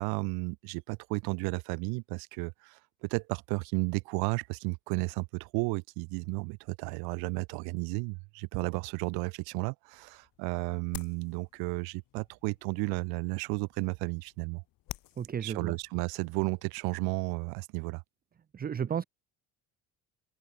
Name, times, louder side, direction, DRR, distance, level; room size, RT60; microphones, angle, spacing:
voice 1, 0.0-14.6 15.4-18.0, right 31 dB, 80° right, 0.8 m, -33 dB
sound 1, 9.9-17.6, left 17 dB, 65° left, 1.8 m, -52 dB
voice 2, 15.2-15.7 18.5-19.1, right 8 dB, 25° right, 0.6 m, -33 dB
open air
supercardioid pair, 80°, 36 cm